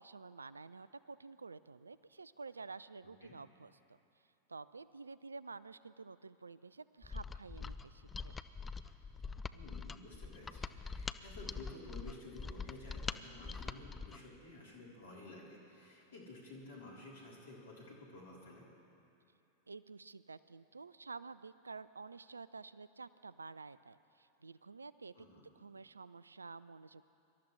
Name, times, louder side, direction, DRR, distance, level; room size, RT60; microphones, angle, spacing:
voice 1, 0.0-4.0 4.5-8.4 19.7-27.0, right 4 dB, 75° right, 17 dB, 0.3 m, -51 dB
voice 2, 3.0-3.4 9.5-18.7 25.1-25.5, left 2 dB, 65° left, -4 dB, 3.7 m, -53 dB
Mechanisms, 7.0-14.2, left 4 dB, 15° left, 0.4 m, -44 dB
24.5 x 13.0 x 3.3 m, 2.7 s
figure-of-eight pair, 90°, 0 cm